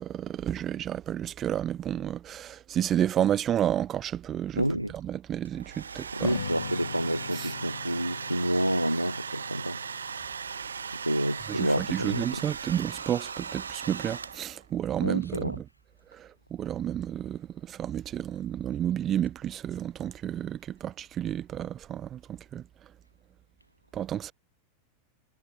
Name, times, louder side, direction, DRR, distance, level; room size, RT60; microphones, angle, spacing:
voice 1, 0.0-6.4 7.3-7.5 11.5-15.7 16.1-22.6 23.9-24.3, right 10 dB, 30° right, 4.7 m, -31 dB
voice 2, 4.6-4.9 6.1-9.8 11.0-12.4 15.0-15.6, right 1 dB, 90° right, 2.2 m, -29 dB
Domestic sounds home sounds, 5.4-14.7, right 6 dB, 70° right, 1.5 m, -38 dB
Strum, 6.2-12.5, left 7 dB, 70° left, 7.9 m, -42 dB
figure-of-eight pair, 90°, 0 cm